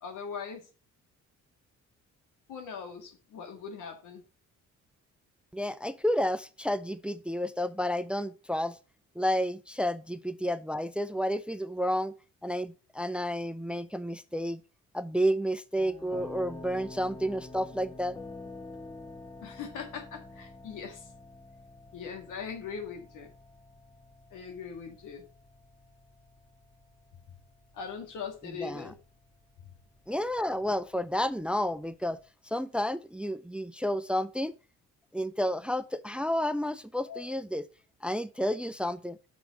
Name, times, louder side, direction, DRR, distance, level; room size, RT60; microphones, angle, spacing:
voice 1, 0.0-0.7 2.5-4.2 19.4-21.1 21.9-23.3 24.3-25.3 27.7-29.0 37.0-37.3, left 6 dB, 85° left, 2.0 m, -40 dB
voice 2, 5.5-8.8 9.2-12.1 12.4-14.6 14.9-18.2 28.4-28.9 30.1-32.2 32.5-34.5 35.1-37.6 38.0-39.2, equal, 5° right, 0.4 m, -31 dB
sound 1, 15.8-32.3, left 2 dB, 15° left, 0.8 m, -49 dB
6.1 x 6.0 x 5.8 m
cardioid pair, 90°, 30 cm